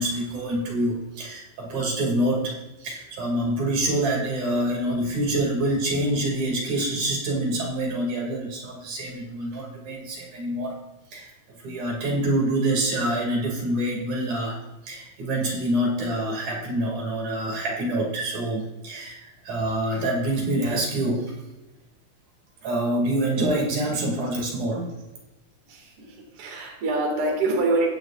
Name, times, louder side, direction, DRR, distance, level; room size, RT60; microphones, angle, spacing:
voice 1, 0.0-2.5 2.8-10.8 11.1-14.6 14.8-21.3 22.6-24.9, right 1 dB, 65° right, -1 dB, 3.7 m, -26 dB
voice 2, 25.7-26.1 26.4-27.9, right 2 dB, 50° right, -1 dB, 2.7 m, -25 dB
15.5 x 10.0 x 2.5 m, 1.0 s
omnidirectional pair, 3.6 m